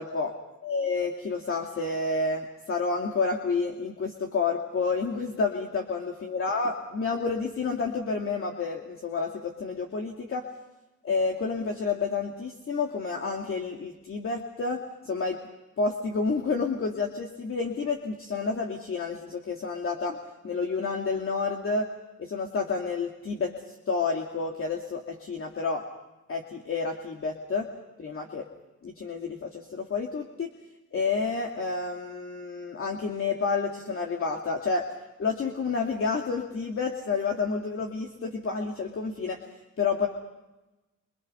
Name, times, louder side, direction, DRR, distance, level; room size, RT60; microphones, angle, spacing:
voice 1, 0.0-0.3 0.6-10.5 11.0-14.8 15.0-15.4 15.8-21.9 22.2-25.8 26.3-27.7 28.0-28.5 28.8-30.5 30.9-34.9 35.2-39.4 39.8-40.1, left 4 dB, 45° left, 1 dB, 2.5 m, -29 dB
27.5 x 26.0 x 5.7 m, 1.0 s
cardioid pair, 90°, 30 cm